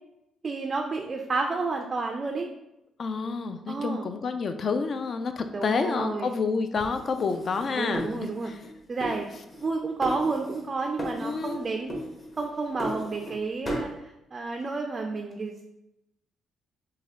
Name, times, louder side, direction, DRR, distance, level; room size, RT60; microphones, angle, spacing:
voice 1, 0.4-2.5 3.7-4.1 5.5-6.3 7.8-8.5 8.9-9.3 9.6-11.9 12.4-15.6, right 3 dB, 35° right, 3 dB, 0.3 m, -30 dB
voice 2, 3.0-8.5 11.2-11.6, left 4 dB, 50° left, 8 dB, 0.3 m, -29 dB
sound 1, 6.8-8.7 9.0-9.7 10.0-10.7 11.0-11.6 11.9-13.4 13.7-13.9, equal, 30° left, 1.0 m, -36 dB
3.3 x 2.2 x 3.5 m, 0.88 s
cardioid pair, 90°, 0 cm